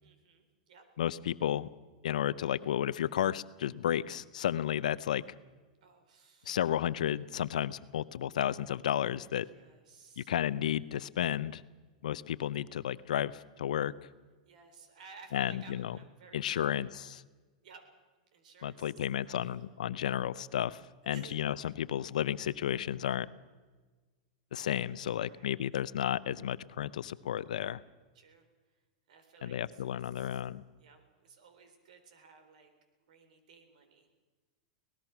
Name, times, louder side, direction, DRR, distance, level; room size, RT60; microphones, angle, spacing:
voice 1, 0.0-0.8 5.8-6.6 9.5-10.3 14.5-16.8 17.6-17.8 18.3-19.6 21.1-21.4 21.6-21.7 25.1-25.6 28.1-28.5 29.1-30.4 30.8-32.7 33.1-34.1, right 5 dB, 75° right, 7 dB, 3.9 m, -57 dB
voice 2, 1.0-1.7 2.0-5.2 6.5-9.5 10.2-11.6 12.0-13.9 15.3-16.0 16.3-17.2 18.6-23.3 24.5-27.8 29.4-30.6, left 10 dB, 85° left, 17 dB, 0.7 m, -32 dB
24.0 x 18.5 x 6.0 m, 1.3 s
supercardioid pair, 135°, 4 cm